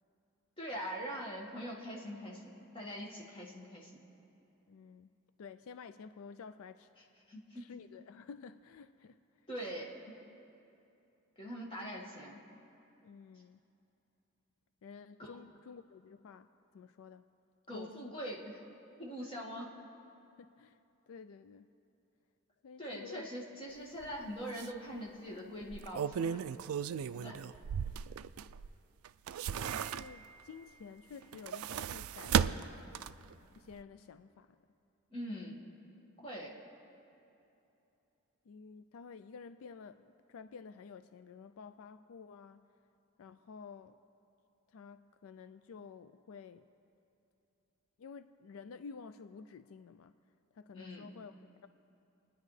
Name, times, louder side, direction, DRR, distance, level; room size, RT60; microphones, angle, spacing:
voice 1, 0.6-4.0 7.3-7.6 9.5-10.1 11.4-12.4 15.2-15.3 17.7-18.6 19.0-19.7 22.8-26.5 27.2-27.4 35.1-35.6 36.2-36.5 50.7-51.1, equal, 25° left, -3 dB, 1.8 m, -43 dB
voice 2, 4.7-5.1 5.4-7.1 7.5-9.2 13.0-13.6 14.8-17.3 17.7-18.1 20.4-20.8 21.1-21.7 22.6-23.3 27.1-27.5 27.8-28.3 29.6-32.7 33.5-34.6 38.5-42.7 43.2-44.0 44.7-46.7 48.0-50.1 50.5-51.7, left 5 dB, 75° left, 11 dB, 0.4 m, -51 dB
sound 1, 24.0-24.2 24.6-24.7 25.6-28.7 29.1-30.4 31.2-33.3 33.7-33.8, right 8 dB, 80° right, 0.3 m, -35 dB
30.0 x 10.5 x 3.3 m, 2.9 s
head